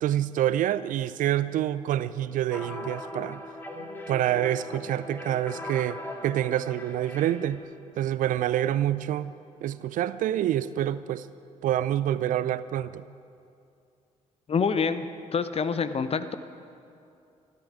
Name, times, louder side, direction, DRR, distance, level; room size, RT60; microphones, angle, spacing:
voice 1, 0.0-3.4 4.1-7.6 8.0-9.3 9.6-11.3 11.6-13.1, right 12 dB, 50° right, 16 dB, 0.5 m, -27 dB
sound 1, 2.5-7.6, left 1 dB, 10° left, 2.8 m, -39 dB
voice 2, 14.5-15.1 15.3-16.3, left 5 dB, 35° left, 12 dB, 0.8 m, -26 dB
13.5 x 11.5 x 9.0 m, 2.5 s
figure-of-eight pair, 40°, 17 cm